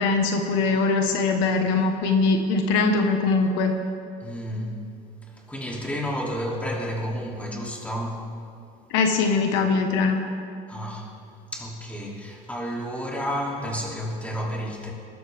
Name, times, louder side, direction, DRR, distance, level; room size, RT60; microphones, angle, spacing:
voice 1, 0.0-3.7 8.9-10.2, left 4 dB, 80° left, 4 dB, 1.4 m, -22 dB
voice 2, 4.2-4.8 5.3-8.3 10.7-11.1 11.5-14.9, equal, 5° left, -3 dB, 2.9 m, -31 dB
21.0 x 13.0 x 3.6 m, 2.5 s
cardioid pair, 125°, 19 cm